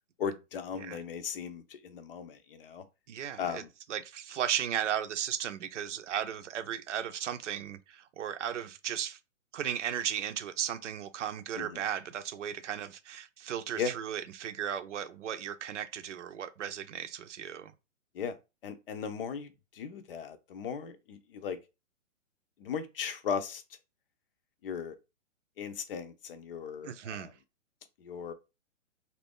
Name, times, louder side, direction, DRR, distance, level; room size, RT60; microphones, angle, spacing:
voice 1, 0.2-2.8 3.4-3.7 11.6-11.8 13.8-13.9 18.1-18.3 18.6-21.6 22.6-23.6 24.6-25.0 25.6-27.3 28.0-28.3, left 6 dB, 45° left, 0.6 m, -37 dB
voice 2, 3.1-3.6 3.9-9.2 9.5-17.7 26.8-27.3, right 9 dB, 65° right, 0.6 m, -35 dB
2.6 x 2.6 x 3.6 m
hypercardioid pair, 140°, 38 cm